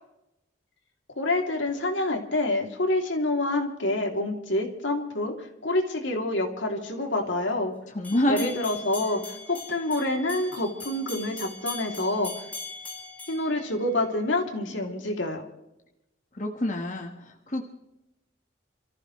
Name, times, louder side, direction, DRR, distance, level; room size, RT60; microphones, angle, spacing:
voice 1, 1.2-5.3 5.6-7.7 8.3-12.3 13.3-15.4, left 2 dB, 75° left, 2 dB, 3.0 m, -27 dB
voice 2, 7.9-8.5 16.3-17.7, left 1 dB, 40° left, 2 dB, 1.5 m, -27 dB
sound 1, 8.0-14.3, left 4 dB, 10° left, 5.0 m, -41 dB
28.5 x 14.5 x 3.2 m, 0.88 s
head